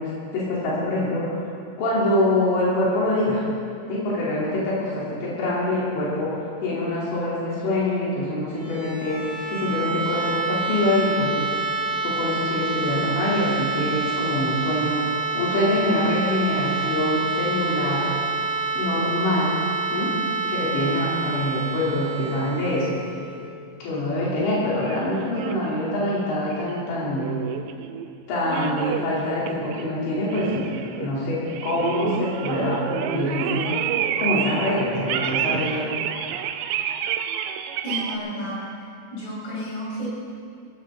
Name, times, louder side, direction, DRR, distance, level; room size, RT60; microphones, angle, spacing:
voice 1, 0.0-1.5 1.8-3.4 3.9-6.3 6.6-11.5 12.0-18.1 18.7-19.5 19.9-20.1 20.5-23.0 23.8-27.3 28.3-33.7 34.2-35.9, left 1 dB, 85° left, -7 dB, 5.3 m, -25 dB
sound 1, 8.4-24.2, right 4 dB, 65° right, 1.0 m, -28 dB
sound 2, 24.8-25.7 26.5-28.1 28.4-29.2 29.5-30.0 30.2-31.1 31.4-38.2, right 9 dB, 80° right, 2.8 m, -29 dB
voice 2, 37.8-38.6 39.1-40.1, equal, 65° left, -6 dB, 6.8 m, -31 dB
19.5 x 15.5 x 3.7 m, 2.3 s
omnidirectional pair, 5.1 m